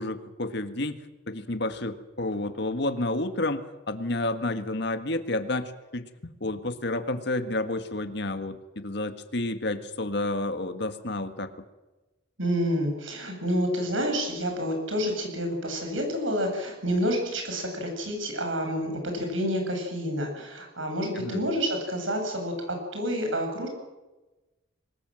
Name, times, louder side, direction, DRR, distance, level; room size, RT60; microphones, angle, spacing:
voice 1, 0.0-6.1 6.4-11.5 21.2-21.4, left 2 dB, 60° left, 8 dB, 1.8 m, -30 dB
voice 2, 12.4-23.7, equal, 75° right, 3 dB, 7.9 m, -29 dB
23.5 x 20.5 x 7.8 m, 1.1 s
head